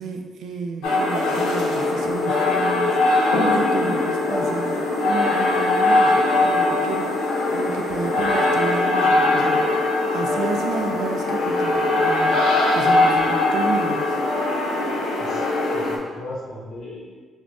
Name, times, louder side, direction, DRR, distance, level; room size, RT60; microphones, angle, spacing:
voice 1, 0.0-7.1 7.5-14.2, right 4 dB, 75° right, 3 dB, 0.3 m, -32 dB
sound 1, 0.8-16.0, left 2 dB, 90° left, 0.5 m, -21 dB
voice 2, 15.2-17.2, left 1 dB, 55° left, -5 dB, 0.7 m, -37 dB
5.8 x 2.1 x 2.6 m, 1.5 s
cardioid pair, 90°, 0 cm